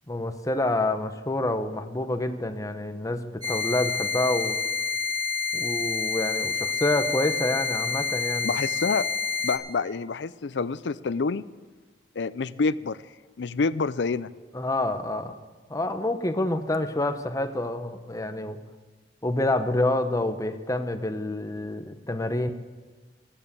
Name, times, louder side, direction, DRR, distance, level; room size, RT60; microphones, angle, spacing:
voice 1, 0.1-4.6 5.5-8.6 14.5-15.4 15.7-18.6 19.2-22.5, left 1 dB, 20° left, 8 dB, 0.9 m, -27 dB
sound 1, 3.4-9.6, left 5 dB, 25° right, 2.8 m, -28 dB
voice 2, 8.4-9.0 9.4-11.4 12.2-13.0 13.4-14.3, left 4 dB, 85° left, 16 dB, 0.5 m, -27 dB
15.0 x 10.0 x 6.8 m, 1.4 s
head